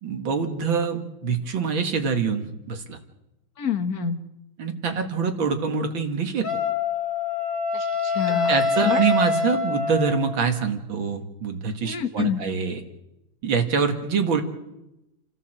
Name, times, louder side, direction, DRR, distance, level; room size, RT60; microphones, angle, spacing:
voice 1, 0.0-3.0 4.6-6.5 8.5-12.8 13.4-14.4, right 5 dB, 75° right, 6 dB, 2.6 m, -25 dB
voice 2, 3.6-4.2 7.7-9.0 11.8-12.4, left 7 dB, 50° left, 8 dB, 1.7 m, -27 dB
Wind instrument woodwind instrument, 6.4-10.4, left 4 dB, 25° left, 2.1 m, -25 dB
29.0 x 13.0 x 7.6 m, 0.93 s
omnidirectional pair, 2.2 m